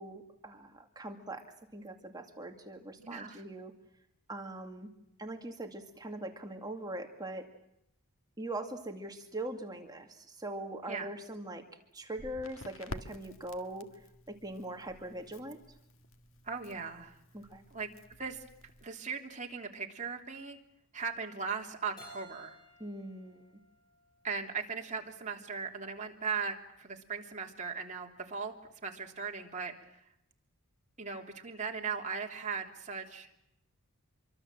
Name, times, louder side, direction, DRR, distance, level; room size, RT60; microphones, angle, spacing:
voice 1, 0.0-1.4 1.7-3.7 4.3-4.9 5.2-7.5 8.4-11.7 11.9-13.9 14.3-15.6 17.3-17.6 22.8-23.6, right 1 dB, 15° right, 4 dB, 2.2 m, -41 dB
voice 2, 3.0-3.4 10.9-11.1 16.4-17.2 17.7-17.9 18.2-18.4 18.8-20.6 20.9-22.6 24.2-28.5 28.8-30.0 31.0-33.3, right 5 dB, 35° right, 1 dB, 3.3 m, -38 dB
Crackle, 12.1-18.8, left 1 dB, 60° left, 1.8 m, -50 dB
Keyboard (musical), 22.0-24.8, right 1 dB, 20° left, 7.9 m, -56 dB
27.0 x 24.0 x 7.6 m, 0.81 s
head